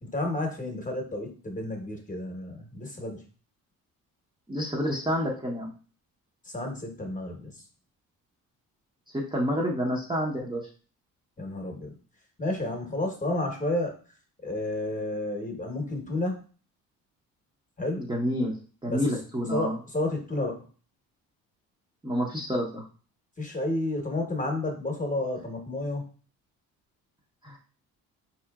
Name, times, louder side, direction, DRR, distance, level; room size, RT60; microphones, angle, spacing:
voice 1, 0.0-3.2 6.4-7.5 11.4-11.9 12.4-13.9 14.4-16.4 17.8-18.1 18.9-19.1 19.5-20.7 23.4-26.0, left 1 dB, 20° left, 2 dB, 1.1 m, -31 dB
voice 2, 4.5-5.7 9.1-10.7 18.0-19.8 22.0-22.8 27.4-27.6, equal, 15° right, -2 dB, 0.8 m, -29 dB
4.2 x 2.9 x 2.3 m, 0.38 s
supercardioid pair, 65°, 36 cm